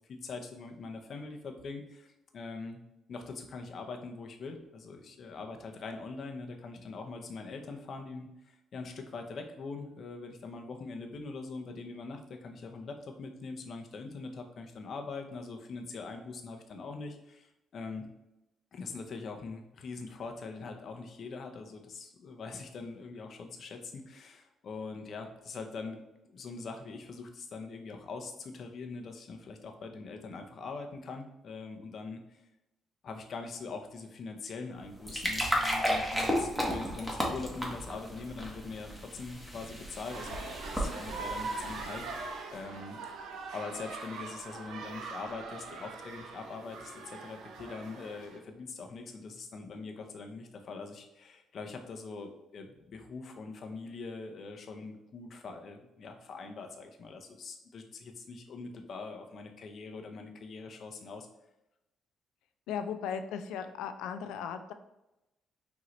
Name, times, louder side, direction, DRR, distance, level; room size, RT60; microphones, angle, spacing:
voice 1, 0.1-2.8 3.1-18.1 18.7-26.0 26.3-32.4 33.0-40.5 40.7-43.0 43.5-61.3, left 4 dB, 55° left, 5 dB, 0.7 m, -43 dB
sound 1, 34.8-42.3, equal, 10° right, 1.3 m, -34 dB
sound 2, 40.1-48.4, right 4 dB, 80° right, 0.7 m, -42 dB
voice 2, 62.7-64.7, left 7 dB, 80° left, 8 dB, 0.4 m, -37 dB
4.9 x 2.8 x 3.2 m, 0.92 s
supercardioid pair, 65°, 0 cm